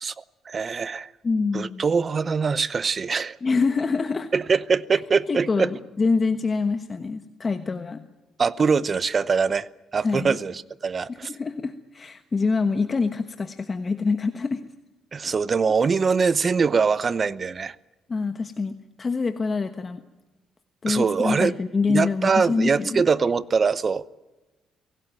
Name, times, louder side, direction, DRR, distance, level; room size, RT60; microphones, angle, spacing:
voice 1, 0.0-1.1 1.5-3.4 4.3-5.7 8.4-11.3 15.1-17.8 20.9-21.5 21.9-24.1, right 5 dB, 40° right, 18 dB, 0.7 m, -23 dB
voice 2, 1.2-1.8 3.4-4.3 5.3-8.0 10.0-10.4 11.3-14.6 18.1-20.0 20.8-23.0, left 4 dB, 35° left, 9 dB, 1.2 m, -25 dB
24.0 x 17.5 x 9.1 m, 1.1 s
cardioid pair, 90°, 0 cm